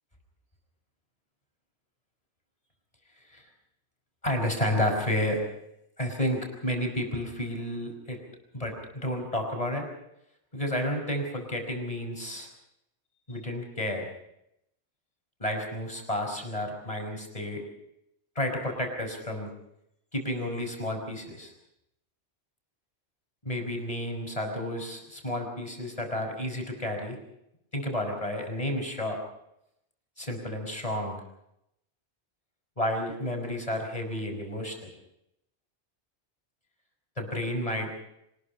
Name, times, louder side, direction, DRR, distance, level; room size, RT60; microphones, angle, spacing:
voice 1, 4.2-5.4 6.0-8.2 8.5-9.9 10.5-12.5 13.3-14.1 15.4-17.6 18.3-19.5 20.1-21.5 23.4-27.2 27.7-29.2 30.2-31.2 32.8-34.7 37.2-37.9, left 1 dB, 30° left, 3 dB, 5.2 m, -31 dB
25.0 x 20.5 x 5.6 m, 0.80 s
omnidirectional pair, 1.1 m